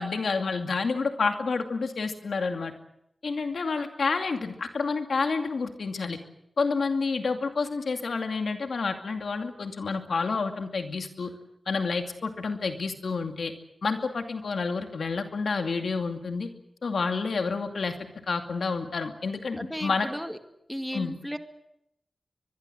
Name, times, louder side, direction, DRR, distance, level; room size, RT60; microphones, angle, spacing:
voice 1, 0.0-2.7 3.2-6.2 6.6-11.3 11.7-13.5 13.8-16.5 16.8-18.0 18.3-20.1 20.9-21.2, left 4 dB, 85° left, 5 dB, 2.4 m, -29 dB
voice 2, 19.6-20.4 20.7-21.4, equal, ahead, 7 dB, 2.2 m, -34 dB
24.0 x 21.5 x 7.9 m, 0.80 s
wide cardioid pair, 80°, 0 cm